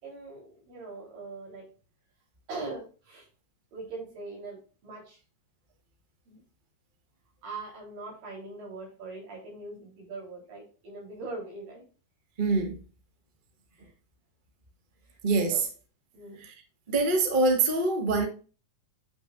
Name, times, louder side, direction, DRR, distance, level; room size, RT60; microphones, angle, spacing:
voice 1, 0.0-1.7 2.5-3.3 3.7-5.2 6.3-6.4 7.4-11.8 13.7-13.9 15.1-15.2 15.5-15.6 16.1-16.4, right 3 dB, 80° right, 5.7 m, -41 dB
voice 2, 12.4-12.8 15.2-15.6 16.4-16.5 16.9-18.3, right 3 dB, 35° right, 0.7 m, -24 dB
9.6 x 6.1 x 2.5 m
omnidirectional pair, 3.9 m